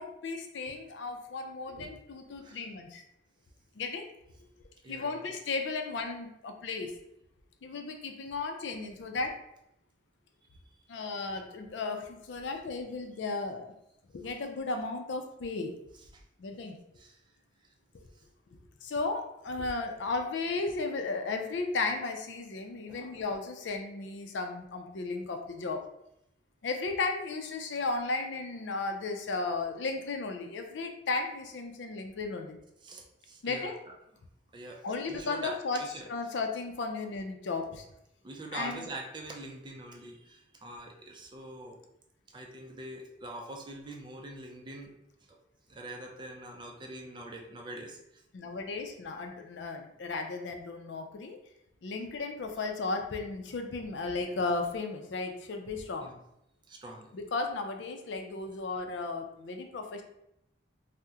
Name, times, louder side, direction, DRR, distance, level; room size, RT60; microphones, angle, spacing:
voice 1, 0.0-3.0 3.8-4.1 4.9-7.0 7.6-9.3 10.9-13.7 14.1-15.8 16.4-16.8 18.8-25.8 26.6-32.6 33.4-33.8 34.8-35.8 36.1-37.8 38.5-38.9 48.3-51.4 51.8-56.1 57.1-60.0, left 3 dB, 80° left, 5 dB, 0.4 m, -35 dB
voice 2, 4.8-5.2 10.5-10.6 16.1-16.2 17.0-17.2 17.6-17.7 18.1-18.2 22.9-23.3 32.8-33.9 34.5-36.1 38.2-41.8 42.3-44.9 45.3-45.4 45.7-48.2 52.6-52.7 56.0-56.2 56.7-57.1, right 1 dB, 25° right, 1 dB, 0.4 m, -44 dB
2.8 x 2.1 x 3.5 m, 0.79 s
head